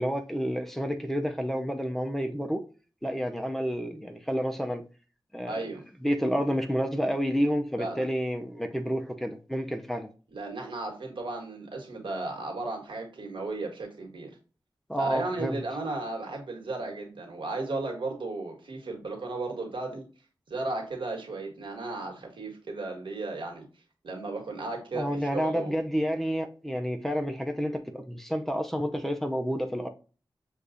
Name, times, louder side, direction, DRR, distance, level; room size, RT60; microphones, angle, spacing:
voice 1, 0.0-2.6 3.0-4.8 5.3-5.6 6.0-10.1 14.9-15.6 24.9-29.9, equal, 5° left, 0.6 m, -29 dB
voice 2, 5.5-5.8 7.8-8.0 10.3-14.3 15.0-20.1 20.5-23.6 24.0-25.8, right 2 dB, 85° right, 1.4 m, -35 dB
6.5 x 2.4 x 2.6 m
wide cardioid pair, 70°, 8 cm